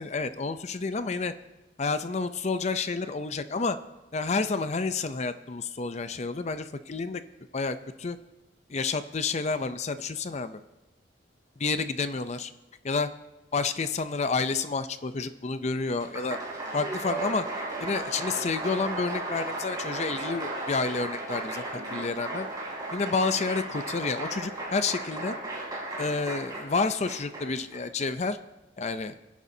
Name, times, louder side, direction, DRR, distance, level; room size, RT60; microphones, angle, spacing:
voice 1, 0.0-1.3 1.8-3.8 4.1-7.2 7.5-8.2 8.7-10.6 11.6-12.5 12.8-13.1 13.5-16.4 16.7-17.5 17.8-21.6 21.9-22.5 22.9-25.4 26.0-28.4 28.8-29.1, left 4 dB, 35° left, 11 dB, 0.5 m, -29 dB
Applause, 15.9-27.8, right 2 dB, 20° right, 3.6 m, -35 dB
26.5 x 11.0 x 2.8 m, 1.0 s
head